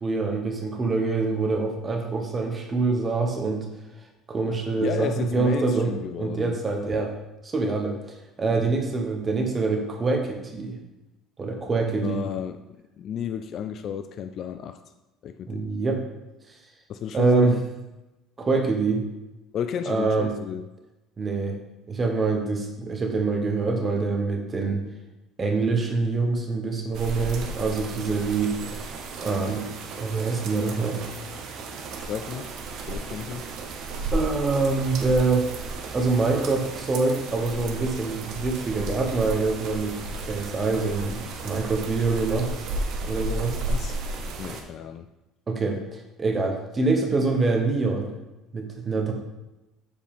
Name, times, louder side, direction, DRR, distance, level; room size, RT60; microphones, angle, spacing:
voice 1, 0.0-3.6 4.3-7.1 7.4-10.8 11.4-12.2 15.5-16.0 17.1-17.6 18.4-19.0 19.9-20.3 21.2-21.6 21.9-24.8 25.4-28.8 29.2-29.7 30.0-31.0 34.1-35.5 35.9-39.9 40.2-42.5 43.0-43.6 45.5-48.1 48.5-49.1, right 3 dB, 20° right, 3 dB, 0.9 m, -25 dB
voice 2, 4.8-6.6 12.0-14.8 15.2-15.7 16.9-17.6 19.5-20.7 32.0-32.5 32.9-33.5 43.6-44.0 44.4-45.1, left 8 dB, 35° left, 9 dB, 0.3 m, -32 dB
sound 1, 26.9-44.6, right 2 dB, 45° right, 0.9 m, -34 dB
7.5 x 6.9 x 3.5 m, 1.0 s
cardioid pair, 180°, 0 cm